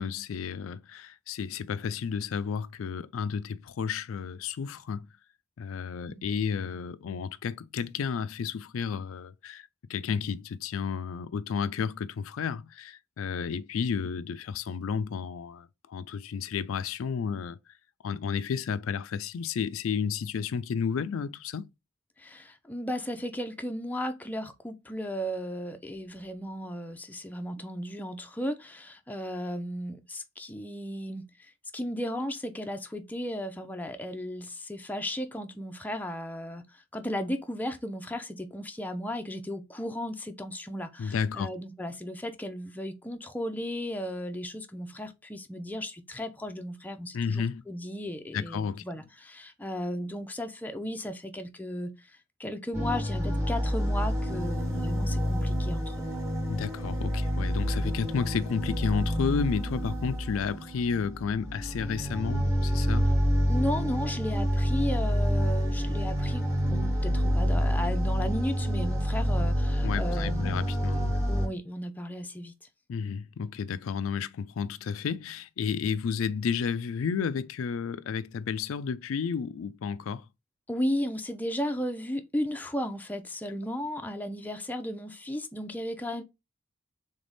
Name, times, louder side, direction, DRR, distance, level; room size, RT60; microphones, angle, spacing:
voice 1, 0.0-5.1 5.6-17.6 18.0-21.7 41.0-41.5 47.1-47.6 48.3-48.8 56.5-63.1 69.8-71.2 72.9-80.3, left 6 dB, 85° left, 0.4 m, -32 dB
voice 2, 22.2-56.0 63.5-70.7 71.3-72.5 80.7-86.2, equal, 10° left, 0.5 m, -35 dB
sound 1, 52.7-71.5, equal, 15° right, 1.2 m, -28 dB
3.5 x 3.4 x 3.9 m
head